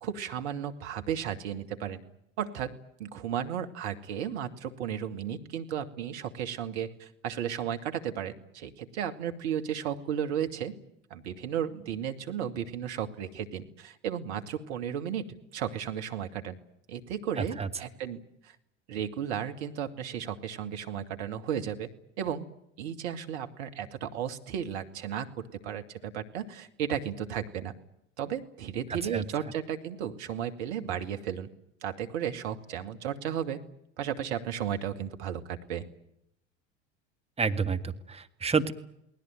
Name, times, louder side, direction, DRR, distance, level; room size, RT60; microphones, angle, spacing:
voice 1, 0.0-2.0 2.4-2.7 3.0-10.7 11.1-15.3 15.5-16.6 16.9-18.6 18.9-21.9 22.2-22.5 22.8-27.7 28.2-31.5 31.8-33.6 34.0-35.8, right 9 dB, 65° right, 7 dB, 2.4 m, -34 dB
voice 2, 37.4-38.7, right 5 dB, 15° right, 7 dB, 2.1 m, -28 dB
29.5 x 19.5 x 9.2 m, 0.78 s
figure-of-eight pair, 70°, 37 cm